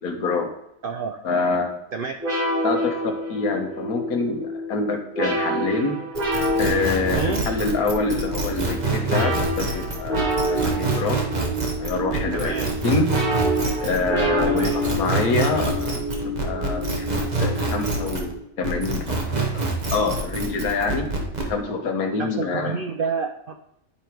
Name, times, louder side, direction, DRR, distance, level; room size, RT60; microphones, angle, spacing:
voice 1, 0.0-0.5 1.2-1.7 2.6-6.0 6.6-11.2 11.8-12.5 12.8-13.1 13.8-22.8, left 4 dB, 80° left, 4 dB, 1.5 m, -26 dB
voice 2, 0.8-1.2 1.9-2.1 7.1-7.5 12.3-12.7 14.5-14.7 22.2-23.5, right 5 dB, 85° right, 5 dB, 0.4 m, -28 dB
sound 1, 2.2-18.4, equal, 70° right, 3.3 m, -28 dB
sound 2, 6.1-18.3 18.6-21.5, right 3 dB, 30° right, 1.0 m, -26 dB
9.8 x 3.3 x 4.5 m, 0.81 s
omnidirectional pair, 1.6 m